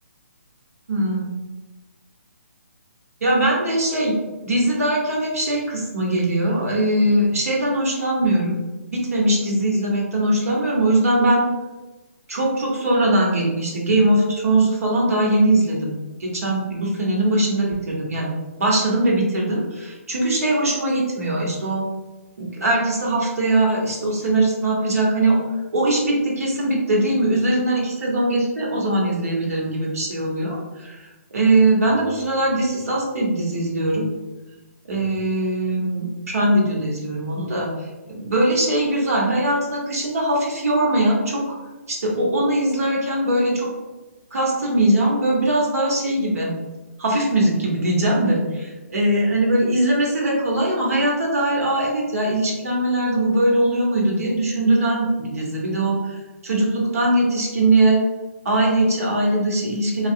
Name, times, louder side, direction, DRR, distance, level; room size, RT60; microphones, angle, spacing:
voice 1, 0.9-1.4 3.2-4.1 4.4-8.6 8.8-11.4 12.3-21.8 22.4-25.4 25.7-34.1 34.9-37.7 38.1-41.4 41.9-43.7 44.3-46.5 47.0-58.0 58.4-60.1, right 1 dB, 75° right, -3 dB, 1.1 m, -21 dB
3.3 x 2.3 x 2.7 m, 1.1 s
hypercardioid pair, 155°, 8 cm